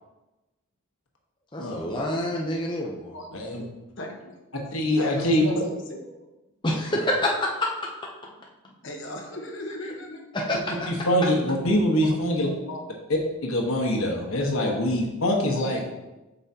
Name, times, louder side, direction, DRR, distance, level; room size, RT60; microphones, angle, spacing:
voice 1, 1.5-3.1 6.6-7.5 10.3-10.9, left 1 dB, 20° left, -2 dB, 0.6 m, -27 dB
voice 2, 4.0-4.3 5.0-6.1 8.6-10.4 12.0-12.1 12.5-12.8 14.6-14.7 15.4-15.8, left 1 dB, 55° left, 2 dB, 1.2 m, -37 dB
voice 3, 4.7-5.5 10.9-12.5 13.4-15.8, left 1 dB, 75° left, 0 dB, 1.3 m, -24 dB
8.0 x 5.5 x 2.8 m, 1.0 s
head